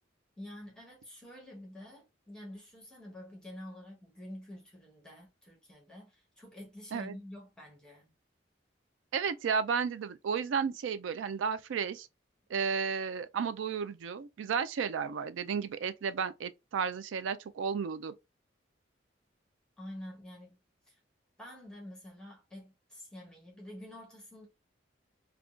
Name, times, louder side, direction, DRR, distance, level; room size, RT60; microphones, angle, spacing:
voice 1, 0.4-8.1 19.8-20.6 20.9-21.0 21.4-24.5, left 1 dB, 5° left, 1.1 m, -48 dB
voice 2, 9.1-12.1 12.5-18.1, right 6 dB, 90° right, 0.4 m, -33 dB
3.6 x 2.3 x 2.4 m
head